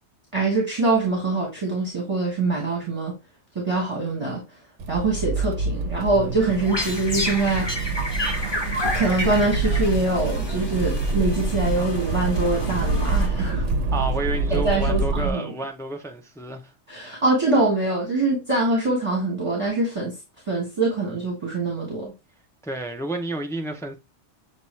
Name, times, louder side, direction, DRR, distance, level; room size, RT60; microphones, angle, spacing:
voice 1, 0.3-3.1 3.5-4.6 4.9-7.9 8.8-13.6 14.5-15.6 16.9-20.2 20.4-22.1, right 2 dB, 25° right, 1.3 m, -24 dB
Accelerating revving vroom, 4.8-15.3, right 3 dB, 75° right, 0.9 m, -26 dB
sound 1, 6.4-13.7, left 1 dB, 25° left, 0.9 m, -31 dB
voice 2, 13.9-16.7 22.6-24.0, right 2 dB, 5° left, 0.3 m, -30 dB
6.9 x 2.3 x 3.1 m
omnidirectional pair, 1.2 m